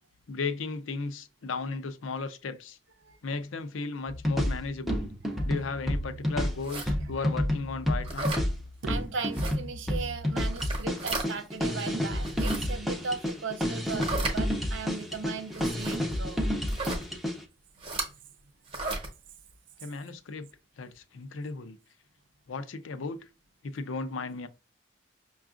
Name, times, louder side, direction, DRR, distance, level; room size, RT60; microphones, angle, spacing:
voice 1, 0.3-2.8 3.2-5.1 5.4-8.3 19.8-20.5 20.8-21.8 22.5-23.2 23.6-24.5, left 4 dB, 80° left, 0.5 m, -35 dB
sound 1, 4.1-17.4, equal, ahead, 0.5 m, -30 dB
sound 2, 6.6-6.9 8.0-8.4 9.3-9.5 10.5-11.3 12.1-12.6 13.8-14.4 15.5-16.0 16.7-17.0 17.8-18.1 18.7-19.1, right 2 dB, 30° right, 0.9 m, -34 dB
voice 2, 8.8-16.4, right 5 dB, 70° right, 0.6 m, -37 dB
5.8 x 2.4 x 2.4 m
head